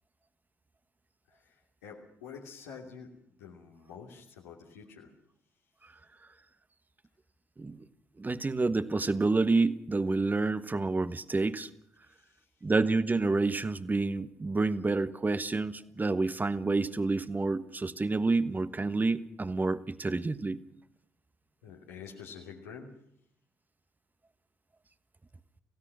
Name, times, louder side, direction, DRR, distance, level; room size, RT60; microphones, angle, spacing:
voice 1, 1.3-3.1 3.4-5.1 12.0-12.4 21.6-22.9, left 6 dB, 85° left, -2 dB, 3.0 m, -48 dB
voice 2, 8.2-11.7 12.6-20.6, right 3 dB, 20° right, 13 dB, 1.4 m, -28 dB
27.0 x 16.5 x 6.3 m, 0.71 s
hypercardioid pair, 50°, 8 cm